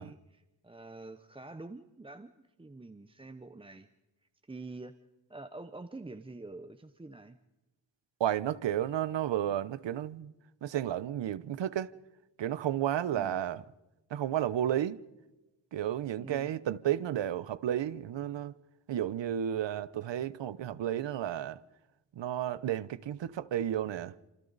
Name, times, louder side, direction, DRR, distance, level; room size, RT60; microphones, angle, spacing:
voice 1, 0.0-3.9 4.4-4.9 5.3-7.4 13.1-13.4 16.2-16.5, right 2 dB, 10° right, 0.6 m, -46 dB
voice 2, 8.2-10.3 10.6-11.9 12.4-13.6 14.1-15.0 15.7-18.5 18.9-21.6 22.2-24.1, right 11 dB, 75° right, 0.9 m, -32 dB
28.0 x 27.0 x 4.0 m
wide cardioid pair, 165°, 44 cm